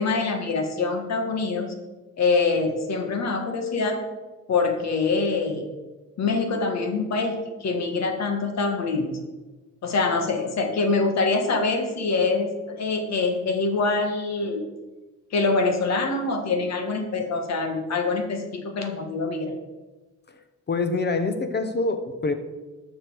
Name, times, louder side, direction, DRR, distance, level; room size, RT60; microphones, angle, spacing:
voice 1, 0.0-1.7 2.2-4.0 4.5-5.7 6.2-9.1 9.8-14.6 15.3-19.5, left 3 dB, 60° left, 5 dB, 1.6 m, -25 dB
voice 2, 20.7-22.3, left 3 dB, 35° left, 8 dB, 1.1 m, -25 dB
12.0 x 6.2 x 4.7 m, 1.2 s
cardioid pair, 90°, 30 cm